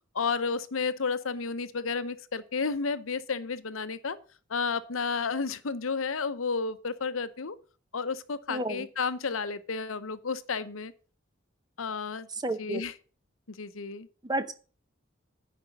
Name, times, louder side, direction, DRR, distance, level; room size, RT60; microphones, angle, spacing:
voice 1, 0.1-4.2 4.5-7.6 7.9-10.9 11.8-12.3 12.6-12.9 13.6-14.1, left 5 dB, 90° left, 13 dB, 0.8 m, -32 dB
voice 2, 8.5-8.9 12.4-12.8 14.2-14.5, right 1 dB, 20° right, 11 dB, 0.8 m, -31 dB
9.9 x 5.2 x 8.0 m, 0.38 s
head